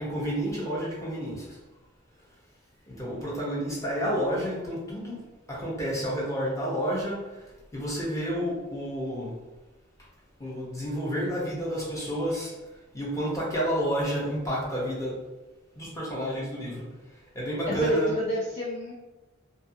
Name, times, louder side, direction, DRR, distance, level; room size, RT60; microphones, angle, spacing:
voice 1, 0.0-1.6 2.9-5.2 5.5-9.4 10.4-15.2 15.8-18.1, equal, 15° left, -5 dB, 0.7 m, -30 dB
voice 2, 17.7-18.9, left 1 dB, 30° left, -5 dB, 0.3 m, -28 dB
2.6 x 2.4 x 2.6 m, 1.1 s
head